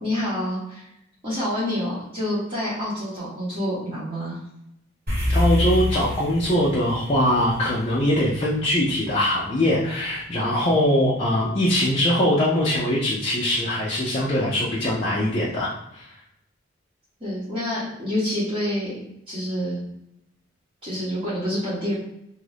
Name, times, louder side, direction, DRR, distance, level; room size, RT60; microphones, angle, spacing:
voice 1, 0.0-0.9 1.2-4.4 17.2-19.0 19.3-19.8 20.8-21.9, left 1 dB, 30° right, -11 dB, 0.9 m, -27 dB
sound 1, 5.1-9.6, left 2 dB, 45° right, 1.2 m, -27 dB
voice 2, 5.3-16.1, left 1 dB, 25° left, -6 dB, 0.5 m, -22 dB
2.6 x 2.5 x 3.3 m, 0.80 s
head